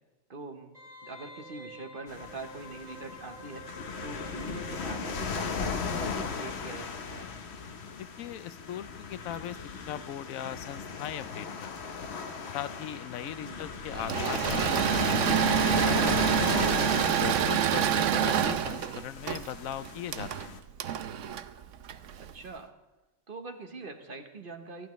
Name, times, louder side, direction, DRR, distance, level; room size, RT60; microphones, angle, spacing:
voice 1, 0.3-0.7 1.0-3.7 4.0-7.3 13.4-13.6 22.3-22.7 23.3-24.9, right 3 dB, 45° right, 6 dB, 1.2 m, -43 dB
Wind instrument woodwind instrument, 0.7-6.3 6.6-6.7, equal, 90° right, 6.0 m, -49 dB
sound 1, 2.1-20.6, left 5 dB, 55° left, 1.1 m, -36 dB
voice 2, 8.0-9.6 9.9-12.1 12.5-16.8 17.1-20.6, left 11 dB, 80° left, 14 dB, 1.0 m, -39 dB
Engine / Mechanisms, 13.9-22.3, right 9 dB, 70° right, 1.0 m, -27 dB
26.5 x 12.0 x 3.1 m, 1.1 s
omnidirectional pair, 1.4 m